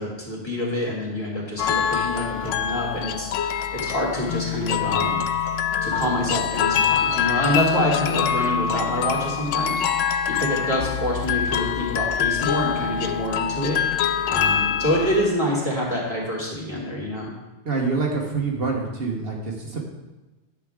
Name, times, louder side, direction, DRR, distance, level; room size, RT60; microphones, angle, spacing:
voice 1, 0.0-5.2 5.8-9.8 10.3-17.3, equal, 20° left, -6 dB, 2.6 m, -26 dB
sound 1, 1.6-15.3, left 8 dB, 80° left, 0.9 m, -25 dB
voice 2, 17.6-19.8, right 4 dB, 55° right, -2 dB, 1.3 m, -26 dB
10.5 x 7.5 x 3.6 m, 1.1 s
omnidirectional pair, 1.3 m